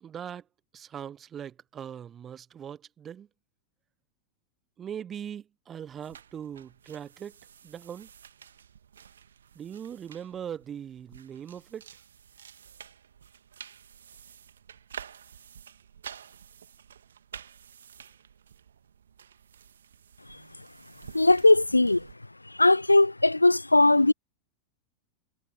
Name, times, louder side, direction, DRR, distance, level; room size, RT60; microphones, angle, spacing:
voice 1, 0.0-0.5 0.7-3.3 4.8-7.4 7.6-8.1 9.5-11.9, right 9 dB, 25° right, 1.1 m, -40 dB
sound 1, 6.0-22.2, right 8 dB, 65° right, 1.8 m, -50 dB
voice 2, 21.1-22.1 22.6-24.1, left 2 dB, 85° left, 0.3 m, -19 dB
figure-of-eight pair, 90°, 0 cm